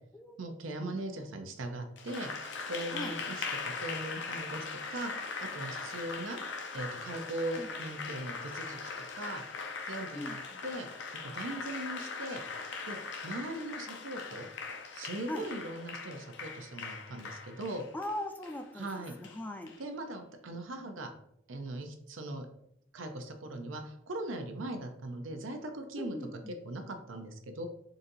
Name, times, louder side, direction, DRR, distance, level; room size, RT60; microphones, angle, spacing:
voice 1, 0.4-2.3 2.7-5.1 5.4-6.4 6.7-9.4 9.9-10.9 11.2-12.4 12.9-13.0 13.2-14.5 14.9-17.8 18.7-19.1 19.8-21.1 21.5-22.5 22.9-26.2 26.5-27.7, right 1 dB, 85° right, 6 dB, 0.6 m, -40 dB
Applause, 2.0-19.8, left 4 dB, 65° left, 0.5 m, -40 dB
voice 2, 10.2-10.6 15.3-15.5 17.9-19.7 26.0-26.5, left 1 dB, 10° left, 5 dB, 0.3 m, -40 dB
3.9 x 2.7 x 3.9 m, 0.74 s
head